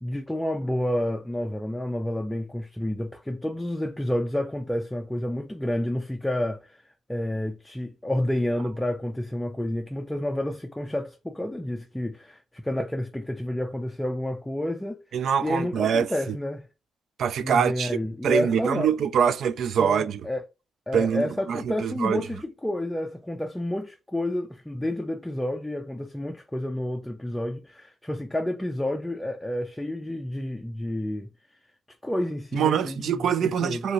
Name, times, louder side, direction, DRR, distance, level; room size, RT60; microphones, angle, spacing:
voice 1, 0.0-6.8 7.1-15.0 15.4-16.7 17.4-18.9 19.8-20.4 20.9-31.6 32.0-33.8, left 1 dB, 5° left, 0.4 m, -30 dB
voice 2, 15.1-16.4 17.2-18.0 18.2-20.2 20.9-22.2 32.5-33.9, right 7 dB, 70° right, 0.3 m, -24 dB
2.7 x 2.6 x 2.9 m
cardioid pair, 115°, 0 cm